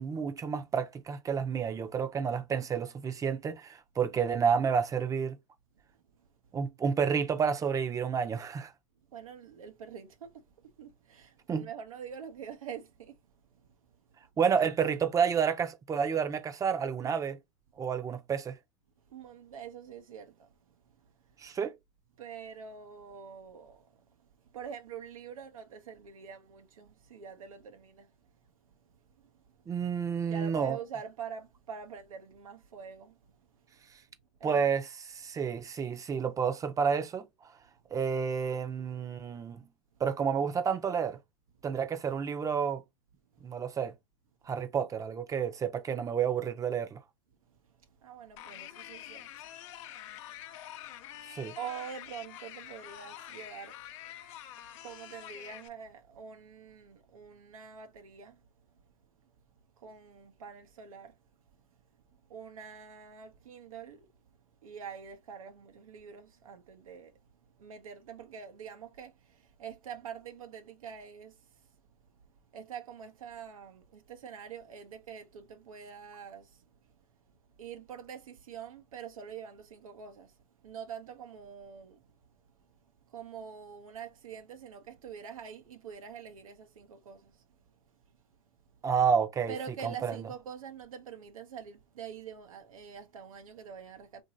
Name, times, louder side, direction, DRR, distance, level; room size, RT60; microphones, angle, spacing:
voice 1, 0.0-5.4 6.5-8.7 11.5-11.7 14.4-17.4 17.8-18.6 21.4-21.7 29.7-30.8 34.4-37.2 37.9-39.6 40.0-41.2 41.6-42.8 43.4-43.9 44.5-47.0 51.3-51.5 88.8-89.5 89.8-90.1, right 6 dB, 20° right, 0.6 m, -30 dB
voice 2, 5.9-6.5 9.1-13.6 14.1-14.2 19.1-21.5 22.2-29.7 30.3-33.9 34.4-34.6 43.4-43.6 47.5-51.2 51.6-53.8 54.1-54.5 54.8-58.8 59.2-59.3 59.8-61.2 61.5-61.6 62.3-67.2 67.6-72.0 72.3-76.9 77.3-88.0 89.5-94.2, right 7 dB, 85° right, 0.8 m, -46 dB
sound 1, 48.4-55.7, left 12 dB, 65° left, 0.6 m, -46 dB
2.9 x 2.6 x 2.6 m
hypercardioid pair, 105°, 17 cm